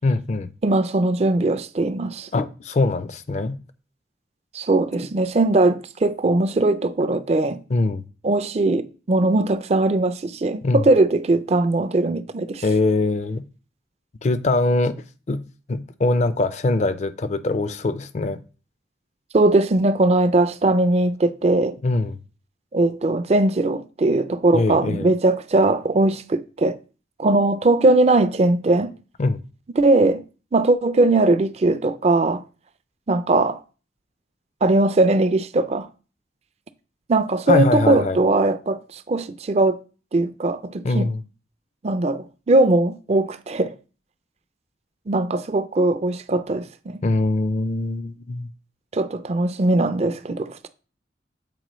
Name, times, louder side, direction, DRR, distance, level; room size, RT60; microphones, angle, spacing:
voice 1, 0.0-0.5 2.3-3.6 7.7-8.0 10.6-10.8 12.6-13.4 14.2-15.0 15.3-15.4 15.7-18.4 21.8-22.2 24.5-25.1 29.2-29.4 37.5-38.2 40.8-41.2 47.0-48.5, left 2 dB, 40° left, 0.4 m, -22 dB
voice 2, 0.6-2.3 4.5-7.6 8.2-12.6 19.3-21.8 22.7-26.8 27.2-28.9 29.8-30.2 30.5-32.4 33.1-33.6 34.6-35.9 37.1-39.8 40.1-41.1 41.8-43.8 45.1-47.0 48.9-50.7, right 2 dB, 35° right, 0.4 m, -20 dB
7.7 x 4.5 x 3.0 m
head